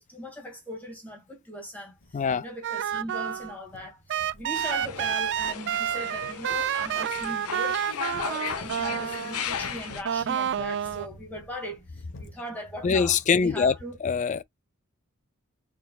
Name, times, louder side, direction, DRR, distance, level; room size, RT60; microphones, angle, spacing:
voice 1, 0.1-14.0, equal, 5° left, 1.9 m, -39 dB
sound 1, 2.0-2.5 2.9-3.4 3.7-7.4 8.1-12.3, left 1 dB, 60° left, 1.1 m, -50 dB
voice 2, 2.1-2.5 12.8-13.8 14.0-14.4, left 6 dB, 35° left, 0.3 m, -23 dB
sound 2, 2.6-3.6 4.1-9.5 10.1-11.1, right 9 dB, 55° right, 0.3 m, -29 dB
sound 3, 4.5-10.0, left 7 dB, 80° left, 0.9 m, -36 dB
4.4 x 3.8 x 2.3 m
head